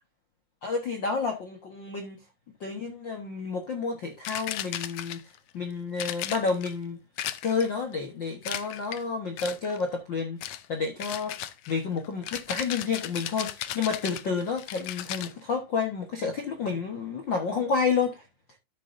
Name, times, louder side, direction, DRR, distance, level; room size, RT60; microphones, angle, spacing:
voice 1, 0.6-2.2 2.6-5.2 5.5-7.0 7.4-11.3 11.7-18.2, left 5 dB, 50° left, 1.4 m, -30 dB
sound 1, 4.2-5.4 6.0-6.7 7.2-7.8 8.4-9.0 9.4-9.8 10.4-10.7 11.0-15.3, left 12 dB, 75° left, 1.6 m, -36 dB
13.0 x 6.6 x 2.7 m
omnidirectional pair, 3.9 m